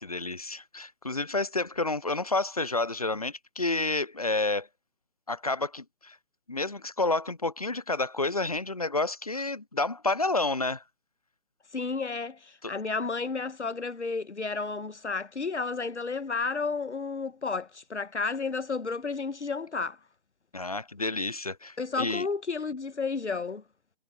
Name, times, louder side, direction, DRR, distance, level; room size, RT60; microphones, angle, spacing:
voice 1, 0.0-4.7 5.3-6.2 6.5-10.8 12.6-12.7 20.5-22.3, left 2 dB, 35° left, 0.5 m, -30 dB
voice 2, 11.7-20.0 21.8-23.6, left 4 dB, 80° left, 0.9 m, -32 dB
figure-of-eight pair, 150°, 34 cm